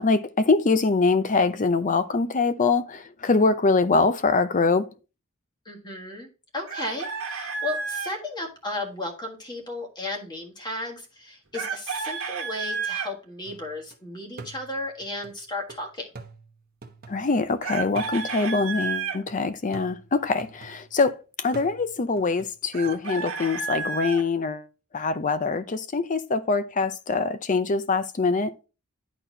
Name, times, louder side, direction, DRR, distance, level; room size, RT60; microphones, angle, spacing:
voice 1, 0.0-4.9 17.1-24.7 24.9-28.5, left 4 dB, 35° left, 0.6 m, -24 dB
voice 2, 5.6-16.1, left 2 dB, 20° left, 1.6 m, -34 dB
Chicken rooster, 6.7-8.2 11.5-13.1 17.6-19.2 22.7-24.2, right 5 dB, 70° right, 1.5 m, -31 dB
sound 1, 13.5-14.0 14.4-17.5 18.0-21.1 21.5-23.0, right 3 dB, 45° right, 1.0 m, -46 dB
11.0 x 4.2 x 2.8 m
head